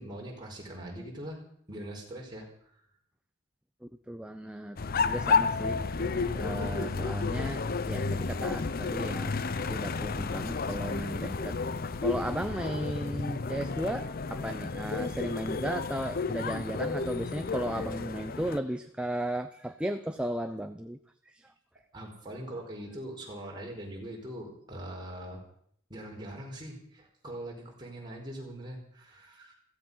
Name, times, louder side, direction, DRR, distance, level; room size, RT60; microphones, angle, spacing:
voice 1, 0.0-1.4 1.7-2.5 21.9-25.4 25.9-29.5, right 1 dB, 20° right, -1 dB, 4.6 m, -42 dB
voice 2, 3.8-6.0 6.3-9.4 9.7-11.6 12.0-21.0 21.3-21.5, right 1 dB, 5° right, 6 dB, 0.7 m, -35 dB
sound 1, 4.8-18.6, left 4 dB, 45° left, 0.6 m, -31 dB
16.0 x 15.5 x 5.7 m, 0.64 s
head